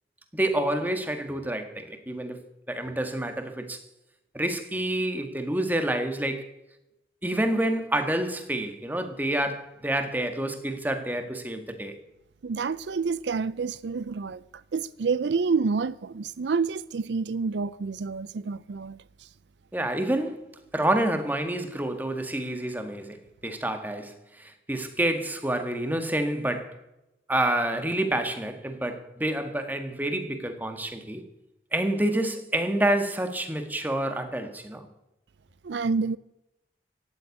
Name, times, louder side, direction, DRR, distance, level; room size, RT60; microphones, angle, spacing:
voice 1, 0.3-2.4 2.7-3.8 4.3-6.5 7.2-12.0 19.7-26.8 27.3-31.2 31.7-34.9, right 1 dB, 10° right, 1.6 m, -28 dB
voice 2, 12.4-14.4 14.7-19.0 35.6-36.2, right 4 dB, 80° right, 0.5 m, -28 dB
15.5 x 7.9 x 9.6 m
head